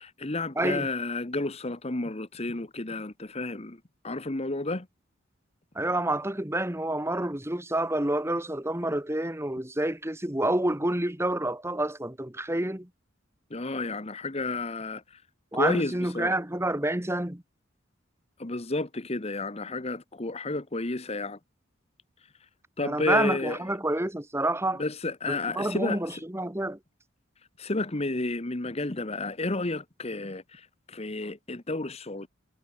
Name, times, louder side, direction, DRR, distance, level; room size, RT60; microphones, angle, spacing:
voice 1, 0.0-4.9 13.5-15.2 15.5-16.3 18.4-21.4 22.8-23.6 24.8-26.2 27.6-32.3, left 2 dB, 30° left, 1.2 m, -31 dB
voice 2, 0.5-0.9 5.7-12.9 15.5-17.4 22.8-24.8 25.3-26.8, right 1 dB, 15° right, 1.7 m, -28 dB
head